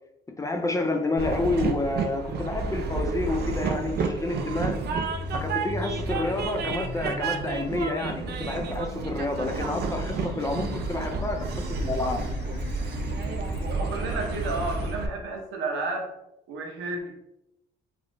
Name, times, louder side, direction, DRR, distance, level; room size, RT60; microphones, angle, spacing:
voice 1, 0.3-4.8 5.3-12.2, left 2 dB, 15° left, 4 dB, 0.4 m, -29 dB
Train, 1.2-15.1, right 4 dB, 55° right, 0.4 m, -30 dB
sound 1, 4.9-14.9, left 3 dB, 70° left, 0.6 m, -41 dB
voice 2, 13.7-16.1 16.5-17.1, right 3 dB, 90° right, 1 dB, 0.8 m, -32 dB
3.2 x 2.4 x 2.6 m, 0.87 s
cardioid pair, 90°, 20 cm